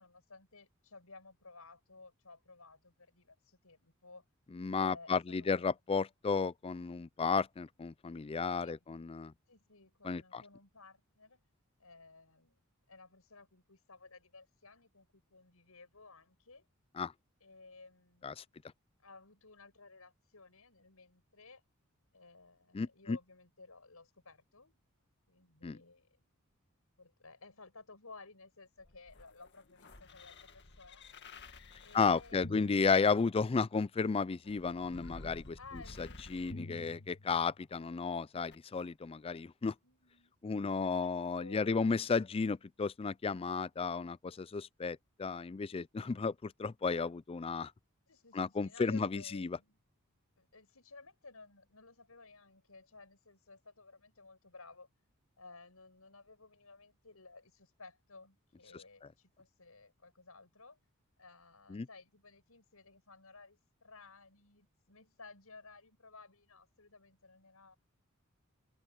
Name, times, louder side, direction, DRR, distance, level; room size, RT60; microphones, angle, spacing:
voice 1, 0.0-4.2 4.7-5.8 8.6-8.9 9.5-11.4 11.8-12.6 12.9-16.7 17.4-18.6 19.0-21.6 22.1-24.8 25.3-26.1 27.0-31.1 31.8-32.9 35.6-37.0 39.8-40.3 40.6-42.4 48.1-49.8 50.4-54.9 55.4-60.8 61.2-67.8, left 3 dB, 85° left, 6.1 m, -56 dB
voice 2, 4.6-9.3 10.0-10.4 17.0-17.1 18.2-18.3 22.7-23.2 25.6-25.8 31.9-35.6 36.0-39.7 40.4-47.7 48.3-49.6 61.7-61.9, left 5 dB, 25° left, 0.4 m, -33 dB
sound 1, 28.8-33.7 34.4-37.8 38.5-38.6, left 2 dB, 55° left, 2.0 m, -50 dB
open air
head